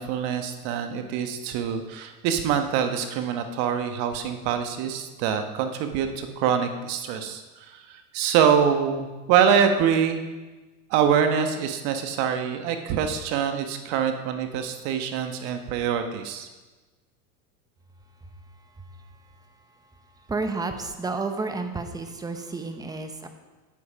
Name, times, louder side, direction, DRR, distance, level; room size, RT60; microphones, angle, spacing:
voice 1, 0.0-10.3 10.9-16.5, right 7 dB, 50° right, 7 dB, 1.3 m, -25 dB
voice 2, 18.6-23.3, right 3 dB, 10° right, 6 dB, 0.8 m, -33 dB
8.5 x 8.4 x 5.2 m, 1.2 s
hypercardioid pair, 115°, 47 cm